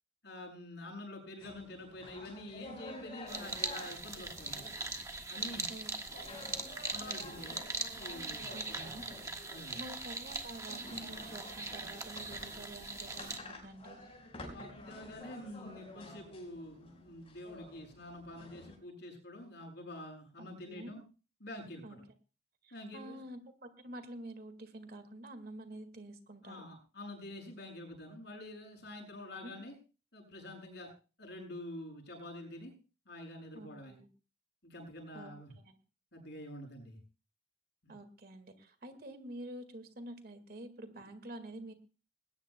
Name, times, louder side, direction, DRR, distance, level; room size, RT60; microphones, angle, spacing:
voice 1, 0.2-4.6 5.3-5.7 6.9-7.6 8.0-9.1 9.5-9.8 14.5-21.0 21.4-22.0 22.7-23.2 26.4-29.8 30.1-30.9 31.2-32.7 33.1-34.0 34.6-35.5 36.1-37.0 37.8-38.0, left 1 dB, 60° left, 2 dB, 6.9 m, -47 dB
sound 1, 1.4-18.8, left 1 dB, 30° left, 5.0 m, -51 dB
sound 2, 3.3-13.4, right 3 dB, 15° right, 1.5 m, -41 dB
voice 2, 5.7-6.5 8.5-9.1 9.8-14.0 20.4-20.9 21.8-22.0 22.6-26.7 29.3-29.6 33.5-34.1 35.1-35.7 37.9-41.7, right 1 dB, 50° right, 8 dB, 1.9 m, -48 dB
21.0 x 18.5 x 2.3 m, 0.35 s
head